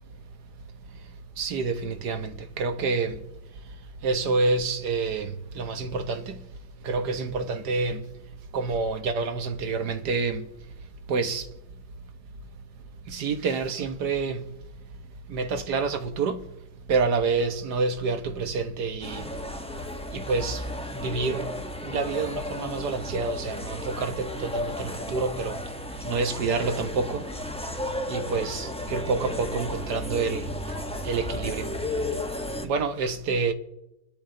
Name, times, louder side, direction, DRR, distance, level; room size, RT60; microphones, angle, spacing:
voice 1, 1.4-3.2 4.0-6.3 6.8-8.0 8.5-10.4 11.1-11.4 13.1-14.4 15.3-16.4 16.9-19.2 20.1-20.6 20.9-21.5 21.8-25.6 26.0-27.2 28.1-30.5 31.0-31.7 32.6-33.5, right 4 dB, 65° right, 1.7 m, -28 dB
sound 1, 19.0-32.7, left 1 dB, 5° left, 0.6 m, -34 dB
29.5 x 12.5 x 3.8 m
omnidirectional pair, 2.0 m